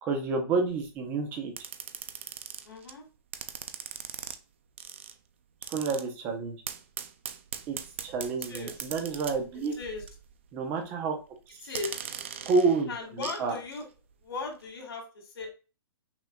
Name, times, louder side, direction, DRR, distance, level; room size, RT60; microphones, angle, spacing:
voice 1, 0.0-1.5 5.7-6.6 7.7-7.8 8.0-9.8 10.5-11.2 11.5-11.6 12.4-12.9 13.4-13.5, right 4 dB, 15° right, 4 dB, 0.7 m, -29 dB
sound 1, 0.7-0.9 1.6-2.9 3.3-4.4 4.8-5.1 5.6-6.0 6.7-10.3 10.6-10.8 11.7-13.4 13.7-13.8, right 8 dB, 30° right, 0.4 m, -40 dB
voice 2, 2.6-3.1 8.5-8.9 9.8-10.0 11.6-11.9 12.9-13.8 14.2-15.6, left 4 dB, 75° left, 2 dB, 2.6 m, -38 dB
5.8 x 3.9 x 2.2 m, 0.32 s
hypercardioid pair, 180°, 13 cm